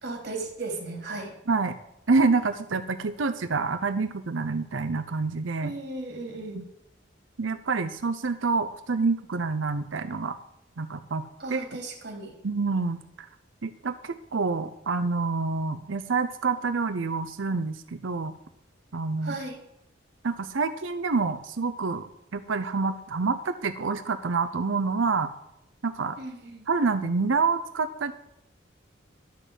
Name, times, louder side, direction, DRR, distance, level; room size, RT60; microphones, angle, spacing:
voice 1, 0.0-1.3 5.6-6.6 11.4-12.3 19.2-19.6 26.2-26.7, right 2 dB, 55° right, 2 dB, 3.4 m, -36 dB
voice 2, 2.1-5.7 6.5-6.6 7.4-10.4 10.8-11.2 11.5-11.6 12.4-13.3 13.6-18.3 18.9-19.3 20.2-25.3 25.8-26.2 26.7-28.1, right 4 dB, 85° right, 9 dB, 0.7 m, -27 dB
12.0 x 6.6 x 8.2 m, 0.82 s
head